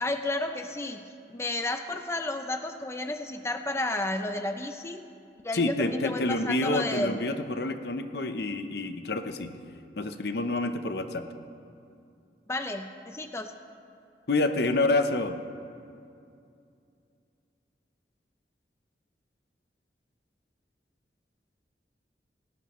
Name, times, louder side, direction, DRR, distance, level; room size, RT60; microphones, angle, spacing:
voice 1, 0.0-5.1 5.4-7.2 12.5-13.5, left 2 dB, 15° left, 7 dB, 0.5 m, -32 dB
voice 2, 5.5-9.5 10.0-11.3 14.3-15.4, left 2 dB, 65° left, 8 dB, 0.8 m, -28 dB
18.5 x 18.0 x 3.1 m, 2.5 s
head